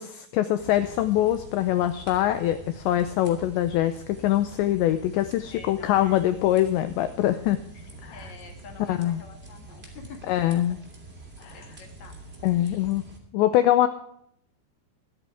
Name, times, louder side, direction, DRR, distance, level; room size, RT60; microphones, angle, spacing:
voice 1, 0.0-7.6 8.0-8.3 8.9-9.2 10.3-10.8 11.4-11.6 12.4-13.0 13.3-13.9, left 13 dB, 85° left, 10 dB, 2.5 m, -23 dB
sound 1, 0.6-13.2, right 2 dB, 20° right, 1.6 m, -45 dB
voice 2, 5.5-6.2 7.7-10.2 11.5-12.1 12.5-12.8, left 4 dB, 50° left, 3 dB, 2.4 m, -47 dB
23.5 x 9.2 x 3.5 m, 0.68 s
omnidirectional pair, 6.0 m